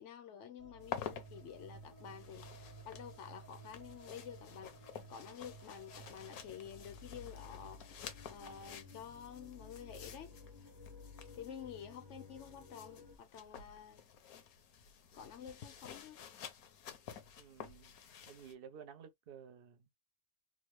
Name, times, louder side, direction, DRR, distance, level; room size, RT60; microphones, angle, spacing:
voice 1, 0.0-4.7 5.1-7.9 8.3-10.4 11.4-14.0 15.1-16.2, left 8 dB, 65° left, 0.8 m, -50 dB
sound 1, 0.6-13.2, left 1 dB, 20° right, 0.6 m, -55 dB
sound 2, 0.8-18.5, left 8 dB, 80° left, 1.2 m, -51 dB
voice 2, 17.4-18.0 18.3-20.0, right 7 dB, 60° right, 0.6 m, -54 dB
3.6 x 2.0 x 3.0 m
omnidirectional pair, 1.5 m